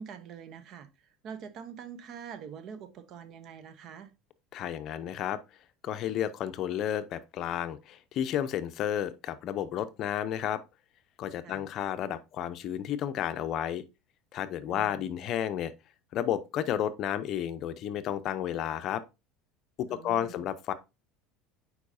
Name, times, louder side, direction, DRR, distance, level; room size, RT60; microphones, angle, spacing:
voice 1, 0.0-4.1 11.4-11.7 14.7-15.0 19.9-20.4, right 7 dB, 50° right, 0.8 m, -45 dB
voice 2, 4.5-5.4 5.8-10.6 11.2-13.8 14.3-15.7 16.1-19.0 19.8-20.7, left 10 dB, 50° left, 0.6 m, -32 dB
8.2 x 4.8 x 2.6 m
supercardioid pair, 120°, 0 cm